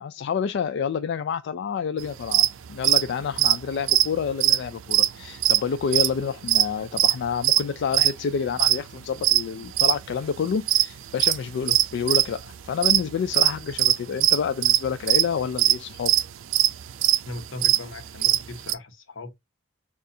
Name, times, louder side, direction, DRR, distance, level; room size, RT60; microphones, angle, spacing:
voice 1, 0.0-16.1, left 6 dB, 60° left, 0.3 m, -28 dB
sound 1, 2.2-2.5 2.8-3.0 3.3-5.1 5.4-5.6 5.9-6.2 6.5-7.1 7.4-7.6 7.9-8.8 9.2-10.0 10.3-12.4 12.7-13.0 13.3-18.7, right 14 dB, 90° right, 0.4 m, -20 dB
voice 2, 17.2-19.4, left 2 dB, 85° left, 1.0 m, -38 dB
6.6 x 2.4 x 2.6 m
head